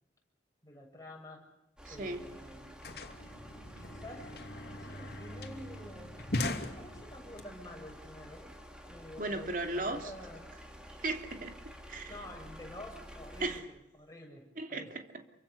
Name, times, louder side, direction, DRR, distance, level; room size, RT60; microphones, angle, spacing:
voice 1, 0.6-1.4 1.9-2.8 3.8-4.3 4.8-6.1 6.8-8.6 8.9-10.5 12.1-14.9, left 1 dB, 20° left, 0 dB, 7.1 m, -49 dB
sound 1, 1.8-13.6, equal, 5° right, 3.1 m, -50 dB
sound 2, 1.9-2.0 2.2-7.4, left 2 dB, 65° left, 2.7 m, -40 dB
voice 2, 1.9-2.2 9.2-10.1 11.0-12.2 13.4-13.6 14.6-15.1, right 2 dB, 50° right, 5 dB, 2.8 m, -36 dB
28.5 x 24.5 x 6.8 m, 0.86 s
head